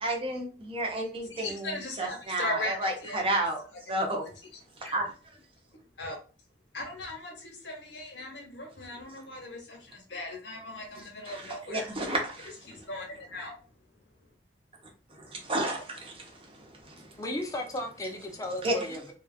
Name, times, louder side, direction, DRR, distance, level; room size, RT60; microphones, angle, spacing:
voice 1, 0.0-3.6 3.9-4.2 4.8-5.1 11.3-12.5 15.2-17.2 18.6-18.9, right 1 dB, 30° right, 0.8 m, -32 dB
voice 2, 1.3-3.4 4.8-5.0 6.0-6.2 6.7-11.9 12.7-13.5, left 2 dB, 80° left, 1.1 m, -38 dB
voice 3, 17.2-19.1, left 1 dB, 20° left, 0.6 m, -35 dB
3.0 x 2.3 x 2.4 m
head